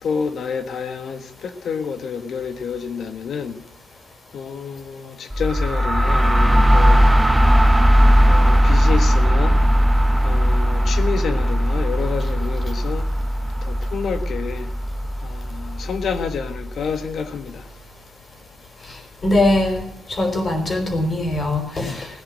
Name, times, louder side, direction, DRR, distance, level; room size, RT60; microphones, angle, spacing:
voice 1, 0.0-3.6 4.3-7.0 8.2-9.6 10.2-13.1 13.6-14.7 15.2-17.7, left 6 dB, 60° left, 1.7 m, -28 dB
sound 1, 5.3-17.0, equal, 5° right, 1.1 m, -18 dB
voice 2, 19.2-22.1, left 1 dB, 35° left, 4.7 m, -21 dB
17.5 x 9.8 x 7.6 m
cardioid pair, 90°, 0 cm